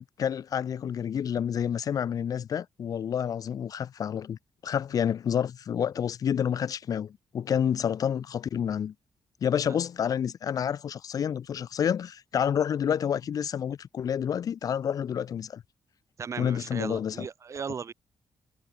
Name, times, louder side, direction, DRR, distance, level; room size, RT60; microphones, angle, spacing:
voice 1, 0.0-8.9 9.4-15.6 16.4-17.2, left 8 dB, 55° left, 0.8 m, -29 dB
voice 2, 16.2-17.9, right 6 dB, 45° right, 2.3 m, -36 dB
cardioid pair, 120°, 7 cm